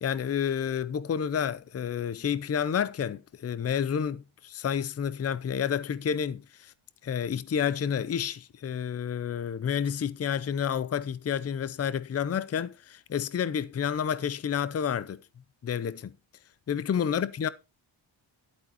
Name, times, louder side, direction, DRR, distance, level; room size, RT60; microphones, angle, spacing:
voice 1, 0.0-6.7 7.0-15.2 15.6-16.1 16.7-17.5, left 8 dB, 30° left, 0.5 m, -30 dB
11.5 x 8.3 x 4.1 m
wide cardioid pair, 140°, 49 cm